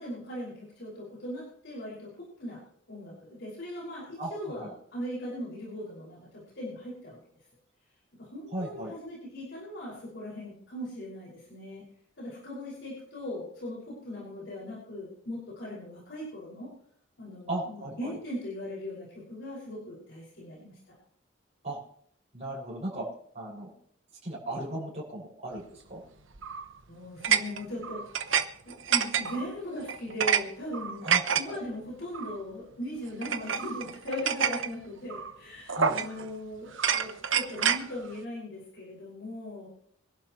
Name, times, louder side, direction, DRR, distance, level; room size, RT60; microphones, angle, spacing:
voice 1, 0.0-2.6 2.9-7.2 8.2-11.8 12.2-16.7 17.2-20.9 26.9-28.4 28.6-31.1 31.3-39.7, equal, 60° left, -5 dB, 6.1 m, -39 dB
voice 2, 4.2-4.7 8.5-8.9 17.5-18.2 21.6-21.8 22.3-23.1 23.3-23.7 24.2-26.0 31.0-31.6 35.7-36.0, right 1 dB, 35° right, -5 dB, 6.5 m, -36 dB
sound 1, 26.4-26.7 27.2-28.5 28.7-29.5 29.9-30.4 30.7-31.4 32.1-32.4 33.2-34.7 35.1-35.3 35.7-36.3 36.7-37.8, right 7 dB, 70° right, 1.0 m, -28 dB
25.5 x 11.5 x 3.2 m, 0.66 s
head